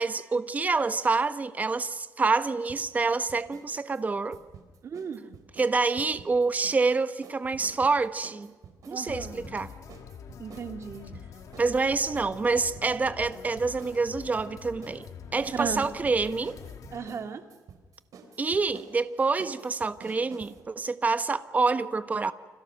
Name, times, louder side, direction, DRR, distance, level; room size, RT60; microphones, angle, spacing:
voice 1, 0.0-4.4 5.6-8.5 8.9-9.7 11.6-15.1 15.3-16.6 18.4-22.3, right 4 dB, 25° right, 1.1 m, -27 dB
sound 1, 2.7-3.7 3.9-6.9 7.2-20.6, right 5 dB, 65° right, 4.2 m, -50 dB
voice 2, 4.8-5.4 8.9-9.4 10.4-11.1 15.5-15.8 16.9-17.4, right 6 dB, 45° right, 2.1 m, -35 dB
sound 2, 9.1-17.1, left 7 dB, 60° left, 2.3 m, -45 dB
29.5 x 26.5 x 6.6 m
cardioid pair, 125°, 6 cm